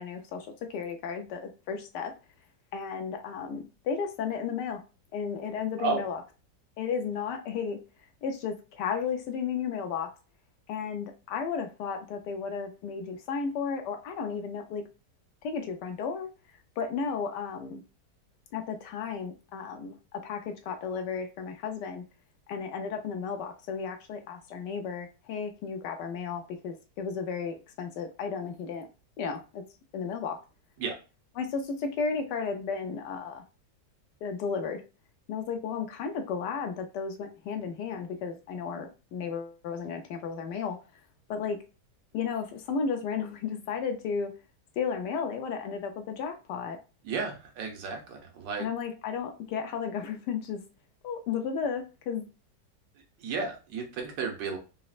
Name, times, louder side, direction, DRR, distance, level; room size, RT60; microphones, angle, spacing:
voice 1, 0.0-2.1 2.7-4.8 5.1-6.2 6.8-7.8 8.2-10.1 10.7-14.8 15.4-16.3 16.8-17.8 18.5-22.0 22.5-28.9 29.2-29.6 29.9-30.4 31.4-33.4 34.2-34.8 35.3-40.8 41.3-41.6 42.1-44.3 44.8-46.8 48.6-50.6 51.0-52.2, left 6 dB, 80° left, 6 dB, 1.2 m, -33 dB
voice 2, 47.1-48.7 53.2-54.6, right 4 dB, 85° right, 2 dB, 1.5 m, -32 dB
4.1 x 2.0 x 2.4 m, 0.31 s
omnidirectional pair, 1.9 m